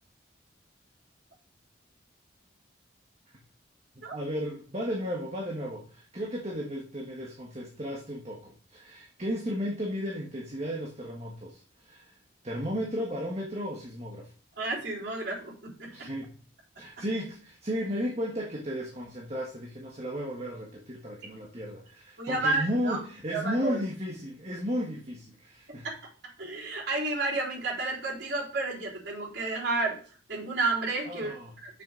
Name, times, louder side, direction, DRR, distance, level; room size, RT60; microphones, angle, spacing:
voice 1, 3.9-12.1 12.4-14.3 15.9-16.3 16.8-25.9 31.0-31.5, equal, 35° right, -2 dB, 1.5 m, -34 dB
voice 2, 14.6-16.1 22.2-23.0 23.3-23.8 25.8-26.0 26.4-30.0 30.3-31.3 31.6-31.8, right 3 dB, 60° right, -8 dB, 4.0 m, -31 dB
6.8 x 6.5 x 5.0 m, 0.42 s
head